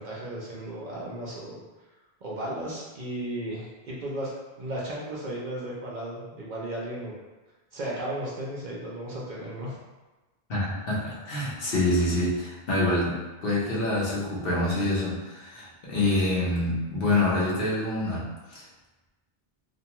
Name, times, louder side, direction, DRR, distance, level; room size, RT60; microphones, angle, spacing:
voice 1, 0.0-1.6 2.2-7.2 7.7-9.8, right 1 dB, 55° right, -5 dB, 0.7 m, -35 dB
voice 2, 10.5-18.6, left 1 dB, 65° left, -6 dB, 1.0 m, -26 dB
2.5 x 2.2 x 2.9 m, 1.2 s
omnidirectional pair, 1.0 m